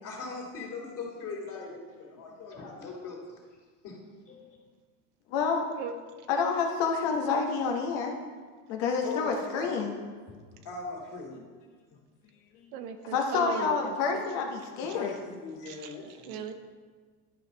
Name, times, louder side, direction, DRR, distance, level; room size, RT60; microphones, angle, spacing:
voice 1, 0.0-3.4 3.8-4.0 4.3-4.5 9.0-9.9 10.3-10.4 10.6-11.4 14.8-16.3, left 4 dB, 40° left, -2 dB, 2.7 m, -39 dB
voice 2, 5.3-5.6 6.3-8.2 8.7-10.0 11.4-11.5 13.1-15.2, left 5 dB, 65° left, 2 dB, 1.2 m, -28 dB
voice 3, 12.7-14.5 14.9-15.0 15.6-16.5, right 7 dB, 70° right, 8 dB, 0.9 m, -38 dB
11.5 x 4.9 x 4.0 m, 1.5 s
supercardioid pair, 100°, 46 cm